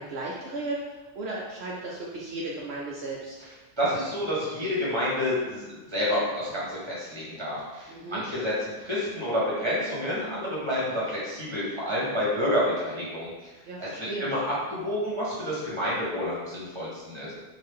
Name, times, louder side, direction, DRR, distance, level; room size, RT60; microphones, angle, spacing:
voice 1, 0.0-3.4 7.9-8.2 13.7-14.2, right 2 dB, 70° right, -4 dB, 0.9 m, -35 dB
voice 2, 3.8-8.5 8.8-13.5 13.8-14.4 14.7-17.3, left 1 dB, 25° right, -6 dB, 1.4 m, -29 dB
4.5 x 2.6 x 3.6 m, 1.2 s
omnidirectional pair, 1.2 m